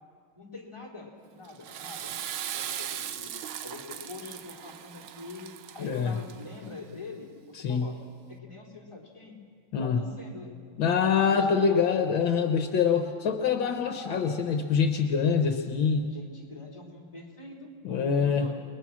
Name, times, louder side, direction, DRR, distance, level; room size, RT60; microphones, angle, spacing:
voice 1, 0.3-2.2 2.5-3.3 3.6-5.5 5.7-7.3 7.7-8.0 8.3-9.4 9.8-10.5 11.3-11.9 16.1-18.5, left 3 dB, 15° left, -2 dB, 3.9 m, -44 dB
Water / Toilet flush, 1.4-6.7, right 10 dB, 85° right, 1.7 m, -38 dB
voice 2, 5.8-6.2 7.6-7.9 9.7-10.0 10.8-16.1 17.8-18.5, left 6 dB, 70° left, 6 dB, 1.9 m, -25 dB
30.0 x 20.5 x 6.2 m, 2.2 s
omnidirectional pair, 2.2 m